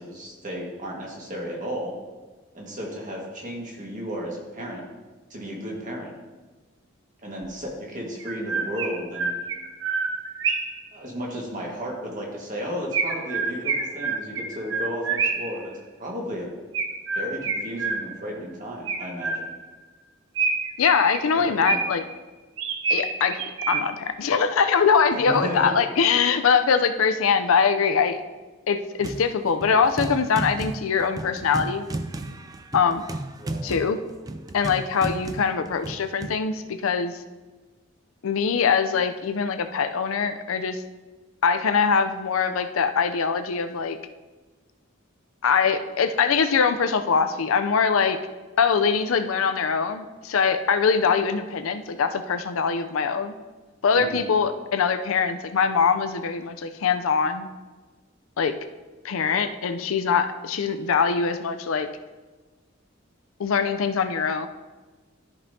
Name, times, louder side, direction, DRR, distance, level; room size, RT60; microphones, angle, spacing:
voice 1, 0.0-1.9 2.5-4.8 5.3-6.1 7.2-9.3 10.9-15.7 16.0-16.5 17.1-19.5 21.4-21.8 25.1-25.7 33.4-33.6 53.9-54.2, equal, 40° right, -2 dB, 1.7 m, -33 dB
Chirp tweet, 7.4-7.5 8.2-10.8 12.9-15.6 16.7-18.3 18.9-19.7 20.3-22.1 22.6-24.1, right 4 dB, 60° right, 0.8 m, -28 dB
voice 2, 20.8-22.0 22.9-23.4 23.7-28.2 28.7-31.8 32.7-33.0 33.6-34.0 34.5-37.2 38.2-40.8 41.4-44.0 45.4-48.2 48.6-53.3 53.8-57.5 58.4-58.5 59.0-61.9 63.4-64.5, left 6 dB, 80° left, 8 dB, 0.5 m, -22 dB
sound 1, 29.0-29.3 29.6-36.4, right 2 dB, 20° right, 0.3 m, -34 dB
13.0 x 5.3 x 2.7 m, 1.3 s
head